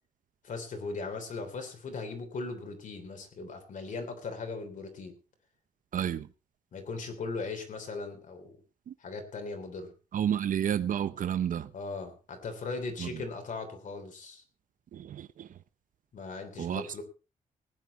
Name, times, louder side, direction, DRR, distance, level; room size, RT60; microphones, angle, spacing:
voice 1, 0.4-5.1 6.7-8.5 9.0-9.9 11.7-14.4 16.1-17.0, left 3 dB, 65° left, 3.3 m, -38 dB
voice 2, 5.9-6.3 8.9-9.0 10.1-11.7 13.0-13.1 14.9-15.5 16.6-17.0, right 9 dB, 65° right, 0.7 m, -31 dB
18.5 x 9.7 x 4.2 m
wide cardioid pair, 140°, 15 cm